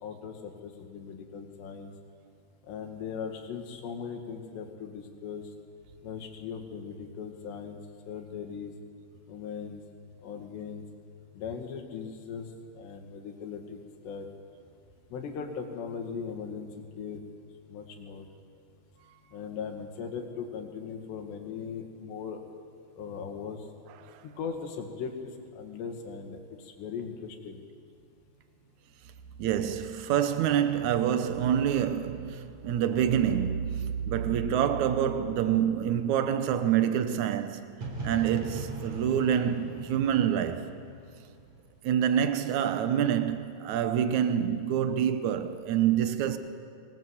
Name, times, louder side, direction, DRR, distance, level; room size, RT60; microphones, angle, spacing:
voice 1, 0.0-1.9 2.7-5.5 6.0-7.8 8.1-8.7 9.3-9.8 10.2-10.8 11.3-12.5 12.7-13.8 14.0-14.3 15.1-17.2 17.7-18.3 19.3-22.4 23.0-23.7 24.2-27.6, left 6 dB, 80° left, 4.2 m, -39 dB
voice 2, 29.4-37.8 38.0-40.7 41.8-46.4, right 9 dB, 80° right, 1.7 m, -27 dB
sound 1, 37.8-41.7, right 2 dB, 50° right, 4.3 m, -39 dB
24.5 x 20.5 x 8.0 m
omnidirectional pair, 4.9 m